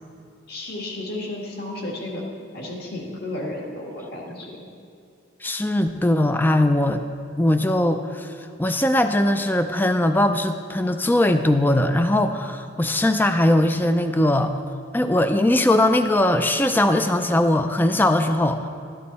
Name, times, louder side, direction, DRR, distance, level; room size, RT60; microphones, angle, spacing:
voice 1, 0.5-2.2 2.5-4.7, left 1 dB, 50° left, -2 dB, 1.9 m, -33 dB
voice 2, 5.4-7.0 7.4-8.3 8.6-14.5 14.9-18.7, left 1 dB, 10° left, 8 dB, 0.4 m, -20 dB
13.0 x 11.5 x 4.1 m, 2.3 s
head